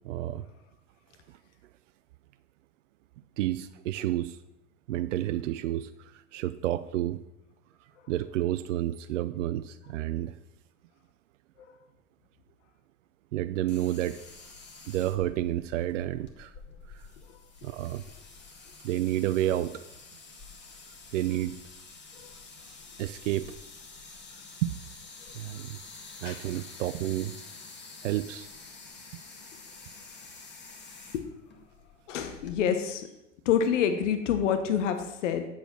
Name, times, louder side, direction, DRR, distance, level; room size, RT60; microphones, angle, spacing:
voice 1, 0.0-0.4 3.4-4.4 4.9-5.9 6.3-7.2 8.1-10.3 13.3-14.2 14.9-16.5 17.6-18.0 18.8-19.8 21.1-21.6 23.0-23.5 24.6-24.8 25.4-25.8 26.2-27.4 28.0-28.5, right 13 dB, 75° right, 12 dB, 0.5 m, -30 dB
sound 1, 13.7-32.6, left 4 dB, 30° left, 1.9 m, -48 dB
voice 2, 26.2-26.6 31.1-31.3 32.1-33.1 33.4-35.5, left 8 dB, 70° left, 8 dB, 1.1 m, -27 dB
8.6 x 6.7 x 6.1 m, 0.89 s
hypercardioid pair, 90°, 37 cm